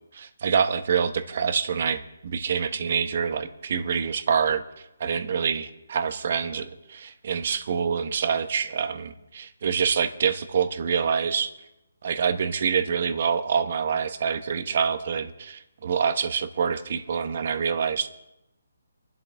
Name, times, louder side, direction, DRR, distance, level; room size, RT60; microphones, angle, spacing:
voice 1, 0.1-11.5 12.0-18.1, right 6 dB, 50° right, 10 dB, 1.2 m, -26 dB
24.5 x 11.5 x 3.5 m, 0.90 s
hypercardioid pair, 160°, 0 cm